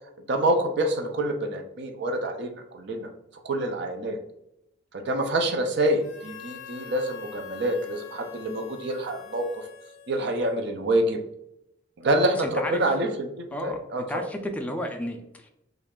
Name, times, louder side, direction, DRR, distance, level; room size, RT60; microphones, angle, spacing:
voice 1, 0.3-3.1 3.4-4.2 4.9-9.6 10.1-11.2 12.0-14.0, right 1 dB, 60° right, 5 dB, 0.5 m, -26 dB
Harmonica, 6.0-10.8, left 8 dB, 70° left, 0.6 m, -45 dB
voice 2, 12.4-12.8 13.5-13.8 14.1-15.5, equal, 5° left, 3 dB, 0.3 m, -32 dB
3.1 x 2.4 x 3.6 m, 0.83 s
head